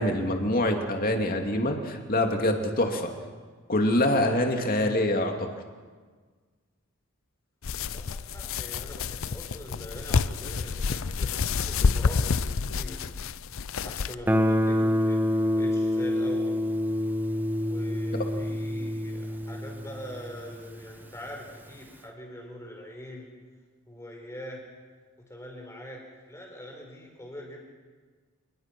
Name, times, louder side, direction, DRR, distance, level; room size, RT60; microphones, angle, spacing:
voice 1, 0.0-3.1 3.7-5.5, left 1 dB, 40° left, 3 dB, 2.6 m, -25 dB
sound 1, 7.6-14.1, left 5 dB, 60° left, 0.6 m, -28 dB
voice 2, 7.8-13.0 13.8-16.6 17.6-23.3 23.9-24.6 25.3-27.6, equal, 15° left, 1 dB, 5.1 m, -43 dB
Guitar, 14.3-21.0, left 1 dB, 10° right, 0.9 m, -27 dB
29.0 x 21.0 x 6.1 m, 1.5 s
head